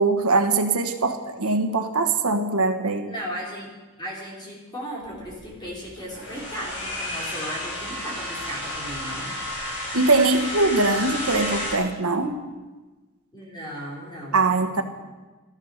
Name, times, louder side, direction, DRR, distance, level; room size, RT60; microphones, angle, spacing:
voice 1, 0.0-3.1 9.9-12.4 14.3-14.8, right 3 dB, 85° right, 6 dB, 1.4 m, -22 dB
voice 2, 3.1-3.7 4.0-9.3 13.3-14.8, equal, 20° left, -4 dB, 4.4 m, -36 dB
sound 1, 5.0-11.8, left 1 dB, 75° left, 5.4 m, -32 dB
14.0 x 14.0 x 6.6 m, 1.2 s
head